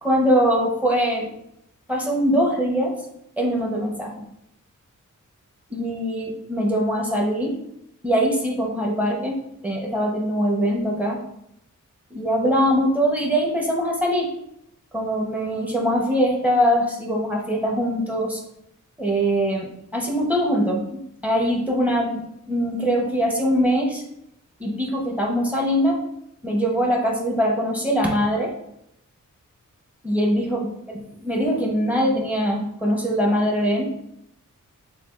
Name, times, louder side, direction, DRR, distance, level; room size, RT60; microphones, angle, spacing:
voice 1, 0.0-1.3 1.9-2.9 3.4-4.2 5.7-7.6 8.0-11.2 12.1-14.3 14.9-18.4 19.0-24.0 24.6-26.0 26.4-28.5 30.0-30.6 31.2-33.9, equal, 5° right, -1 dB, 0.8 m, -22 dB
6.8 x 2.4 x 2.4 m, 0.77 s
wide cardioid pair, 155°, 31 cm